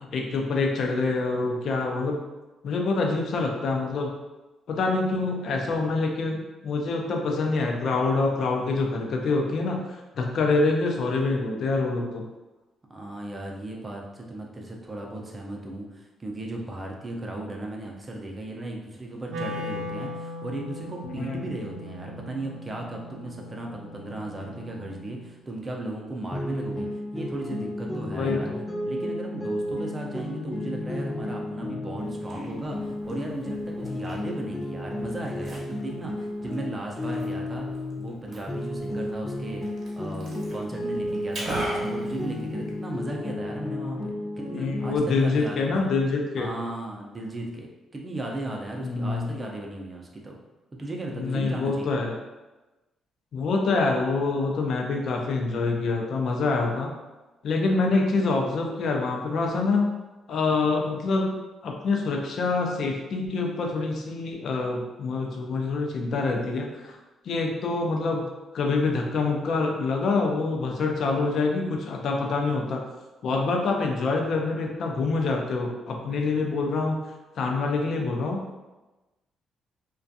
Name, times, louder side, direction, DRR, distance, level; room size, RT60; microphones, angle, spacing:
voice 1, 0.1-2.2 2.6-4.1 4.7-12.3 21.2-21.4 28.1-28.6 44.5-46.5 48.8-49.4 51.1-52.2 53.3-56.9 57.4-59.9 60.3-61.3 61.6-67.0 67.2-68.2 68.5-72.8 73.2-77.0 77.4-78.4, left 3 dB, 65° left, 1 dB, 0.4 m, -26 dB
voice 2, 12.9-28.5 28.8-37.7 38.0-39.6 39.9-44.1 44.4-45.9 46.4-50.4 50.7-52.0, right 1 dB, 25° right, 0 dB, 0.5 m, -36 dB
Wind instrument woodwind instrument, 19.3-25.4, left 1 dB, 90° right, 0.3 m, -39 dB
sound 1, 26.3-38.2 38.5-45.0, left 1 dB, 10° left, 0.7 m, -33 dB
Liquid, 32.0-43.0, right 1 dB, 55° right, 0.8 m, -41 dB
2.4 x 2.2 x 2.6 m, 1.1 s
cardioid pair, 90°, 0 cm